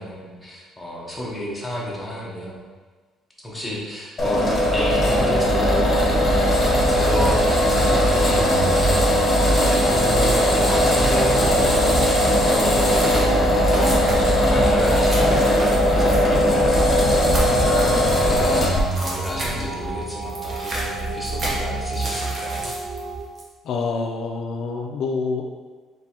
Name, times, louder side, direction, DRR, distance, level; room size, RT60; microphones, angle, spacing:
voice 1, 0.0-2.6 3.4-6.1 6.7-8.8 9.3-12.1 12.5-13.0 13.7-16.7 17.0-22.7, equal, 5° left, -5 dB, 0.9 m, -31 dB
sound 1, 4.2-18.8, left 1 dB, 25° left, 1.1 m, -19 dB
sound 2, 5.0-23.2, right 3 dB, 75° right, 1.1 m, -29 dB
sound 3, 11.6-12.2 12.5-19.8 20.1-23.0 23.3-23.4, right 1 dB, 35° right, 1.0 m, -33 dB
voice 2, 23.6-25.5, left 4 dB, 60° left, 1 dB, 0.4 m, -26 dB
4.2 x 3.2 x 2.8 m, 1.4 s
cardioid pair, 140°, 0 cm